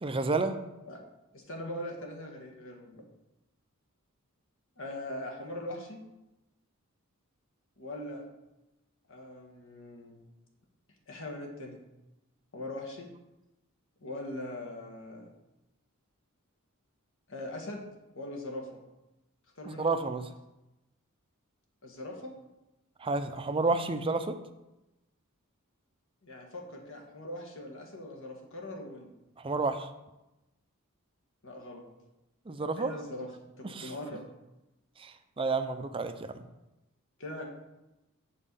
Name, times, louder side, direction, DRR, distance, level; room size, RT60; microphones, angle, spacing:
voice 1, 0.0-0.6 19.7-20.2 23.0-24.4 29.4-29.9 32.5-32.9 33.7-33.9 35.0-36.4, right 3 dB, 25° right, 8 dB, 0.5 m, -30 dB
voice 2, 1.3-3.1 4.8-6.0 7.8-8.2 9.1-10.2 11.1-11.8 12.5-13.1 14.0-15.3 17.3-17.8 18.1-18.8 19.6-19.9 21.8-22.3 26.2-29.1 31.4-31.8 32.8-33.3 33.5-34.2 37.2-37.4, left 1 dB, 65° left, 1 dB, 1.6 m, -41 dB
7.4 x 4.4 x 6.9 m, 0.97 s
head